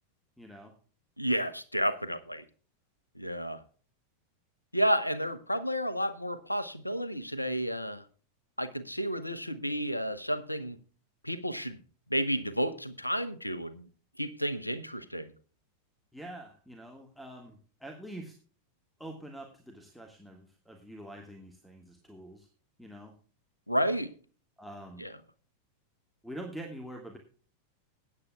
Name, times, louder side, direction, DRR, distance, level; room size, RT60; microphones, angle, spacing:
voice 1, 0.4-0.7 16.1-18.3 19.0-22.5 22.8-23.1 24.6-25.0 26.2-27.2, right 1 dB, ahead, 4 dB, 1.7 m, -45 dB
voice 2, 1.2-2.4 3.2-3.6 4.7-8.0 8.6-10.8 11.2-11.8 12.1-13.9 14.2-15.3 23.7-24.1 25.0-25.2, equal, 85° left, 14 dB, 1.0 m, -31 dB
20.5 x 9.6 x 2.3 m, 0.40 s
figure-of-eight pair, 90°, 0 cm